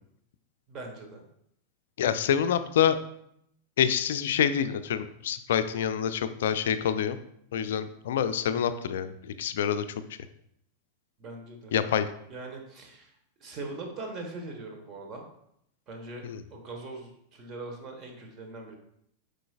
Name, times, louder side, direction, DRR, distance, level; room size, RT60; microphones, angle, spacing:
voice 1, 0.7-1.2 11.2-11.7 12.3-13.1 13.4-15.2 15.9-16.2 16.5-18.7, right 2 dB, 30° right, 2 dB, 1.3 m, -41 dB
voice 2, 2.0-3.0 3.8-7.2 7.5-9.8 11.7-12.1 16.2-16.4, left 8 dB, 60° left, 12 dB, 0.4 m, -26 dB
7.5 x 5.2 x 2.4 m, 0.73 s
figure-of-eight pair, 90°, 0 cm